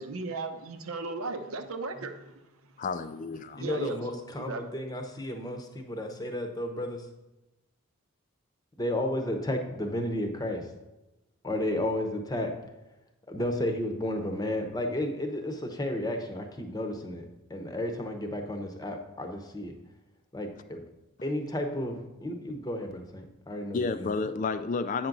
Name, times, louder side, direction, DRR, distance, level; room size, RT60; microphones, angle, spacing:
voice 1, 0.0-2.3 3.6-4.0 4.4-4.7, right 3 dB, 85° right, 7 dB, 0.8 m, -36 dB
voice 2, 2.8-3.6 23.7-25.1, left 4 dB, 35° left, 11 dB, 0.3 m, -31 dB
voice 3, 3.6-7.1 8.8-10.7 11.4-12.5 13.3-17.2 17.5-19.7 20.3-20.8 21.2-24.1, left 1 dB, 20° left, 4 dB, 0.8 m, -32 dB
8.6 x 6.0 x 3.9 m, 1.0 s
head